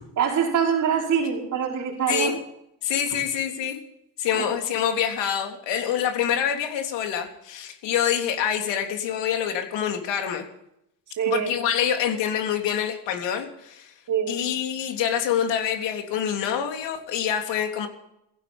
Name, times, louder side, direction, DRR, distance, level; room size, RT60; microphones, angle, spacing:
voice 1, 0.2-2.3 4.3-4.5 11.2-11.5 14.1-14.4, right 7 dB, 45° right, 0 dB, 5.4 m, -24 dB
voice 2, 2.8-3.8 4.2-10.4 11.3-13.9 14.3-17.9, left 9 dB, 80° left, 4 dB, 3.5 m, -26 dB
17.0 x 15.5 x 5.5 m, 0.80 s
cardioid pair, 170°, 43 cm